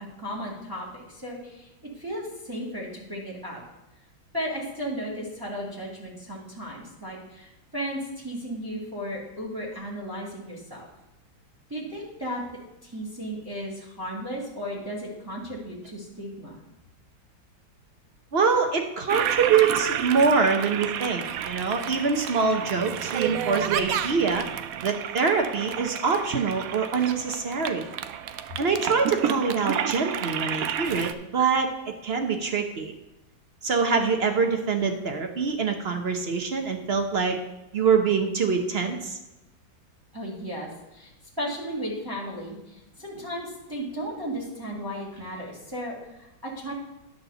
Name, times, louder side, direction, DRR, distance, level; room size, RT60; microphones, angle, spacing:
voice 1, 0.2-1.7 2.0-3.6 4.3-10.9 11.7-12.4 12.8-16.6 40.1-41.1 41.4-46.7, equal, 10° right, -3 dB, 1.8 m, -35 dB
voice 2, 18.3-24.5 24.8-27.9 28.6-31.7 32.0-32.9 33.6-37.4 37.7-39.2, right 5 dB, 50° right, 4 dB, 0.7 m, -24 dB
Toilet flush, 19.1-31.1, right 9 dB, 85° right, 0.7 m, -30 dB
10.5 x 4.3 x 6.8 m, 0.96 s
omnidirectional pair, 2.1 m